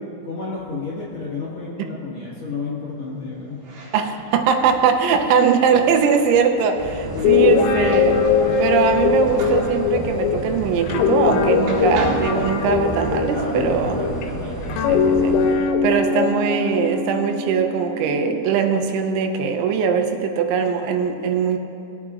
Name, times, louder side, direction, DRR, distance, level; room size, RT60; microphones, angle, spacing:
voice 1, 0.2-3.6 13.3-14.8, left 3 dB, 55° left, -9 dB, 1.9 m, -31 dB
sound 1, 3.5-11.3 11.6-13.3, right 2 dB, 65° right, 3.4 m, -36 dB
voice 2, 3.9-8.2 8.6-14.0 14.9-21.6, right 6 dB, 85° right, 5 dB, 3.1 m, -21 dB
sound 2, 6.8-15.5, right 2 dB, 50° right, 1.8 m, -32 dB
Guitar, 7.1-14.3 14.7-18.4, left 6 dB, 90° left, 3.0 m, -21 dB
19.0 x 8.6 x 2.5 m, 2.9 s
omnidirectional pair, 5.4 m